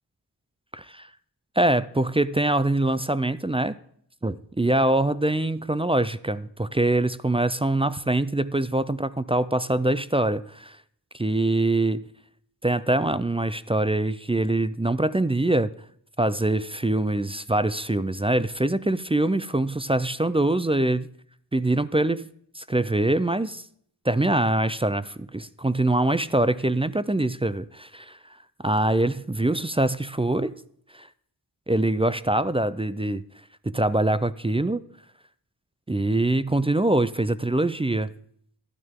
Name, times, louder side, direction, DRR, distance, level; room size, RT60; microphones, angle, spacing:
voice 1, 0.7-1.1 1.6-3.8 4.2-10.8 11.1-12.1 12.6-15.7 16.2-21.1 21.5-22.3 22.5-23.7 24.0-28.4 28.6-30.5 30.9-31.1 31.7-33.2 33.6-34.8 35.9-38.1, right 1 dB, 15° right, 15 dB, 0.3 m, -24 dB
12.0 x 9.4 x 3.6 m, 0.64 s
wide cardioid pair, 50°, 42 cm